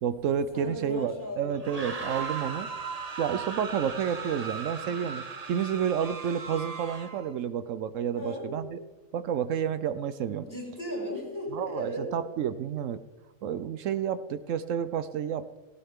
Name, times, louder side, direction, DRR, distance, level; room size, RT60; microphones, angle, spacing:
voice 1, 0.0-2.7 3.2-8.8 9.1-10.5 11.5-13.0 13.4-15.6, right 8 dB, 75° right, 13 dB, 1.0 m, -30 dB
voice 2, 0.5-2.1 4.8-5.0 8.1-8.5 10.4-12.1, equal, 15° left, -5 dB, 6.5 m, -37 dB
sound 1, 1.5-7.3, right 4 dB, 30° right, 1.1 m, -37 dB
18.0 x 17.0 x 3.6 m, 1.1 s
omnidirectional pair, 1.4 m